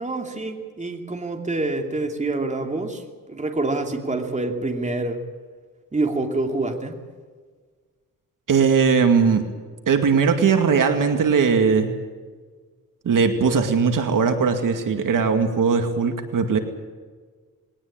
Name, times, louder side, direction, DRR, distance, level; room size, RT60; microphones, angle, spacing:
voice 1, 0.0-3.0 3.3-5.2 5.9-7.0, right 2 dB, 20° right, 3 dB, 2.9 m, -26 dB
voice 2, 8.5-9.5 9.9-11.9 13.0-16.6, right 5 dB, 65° right, 6 dB, 2.3 m, -19 dB
21.5 x 18.5 x 8.8 m, 1.5 s
wide cardioid pair, 115°, 34 cm